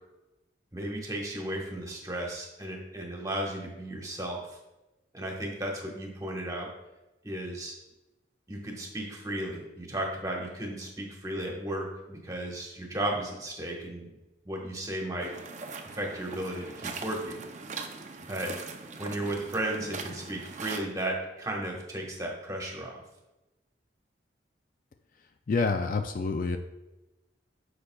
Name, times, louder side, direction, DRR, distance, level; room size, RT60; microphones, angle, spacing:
voice 1, 0.7-4.5 5.1-6.7 7.2-7.7 8.5-14.1 14.4-15.3 15.9-17.4 18.3-18.5 19.0-23.0, right 1 dB, 20° right, -1 dB, 1.2 m, -34 dB
sound 1, 15.2-20.8, right 4 dB, 40° right, 0.5 m, -41 dB
voice 2, 25.5-26.6, left 4 dB, 45° left, 7 dB, 0.4 m, -27 dB
9.6 x 6.6 x 2.3 m, 1.0 s
head